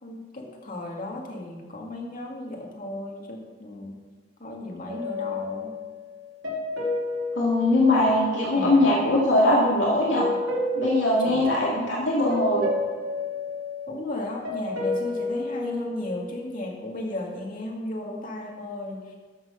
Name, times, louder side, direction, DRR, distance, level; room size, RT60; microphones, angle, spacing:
voice 1, 0.0-4.1 4.4-5.8 8.5-8.9 11.2-11.6 13.9-19.1, left 1 dB, 45° left, 0 dB, 2.0 m, -35 dB
sound 1, 4.9-8.7 10.1-12.0 12.3-16.8, left 1 dB, 85° right, 2.3 m, -31 dB
voice 2, 7.4-10.3 10.7-12.7, left 1 dB, 75° left, -5 dB, 2.2 m, -21 dB
13.0 x 6.1 x 5.7 m, 1.4 s
head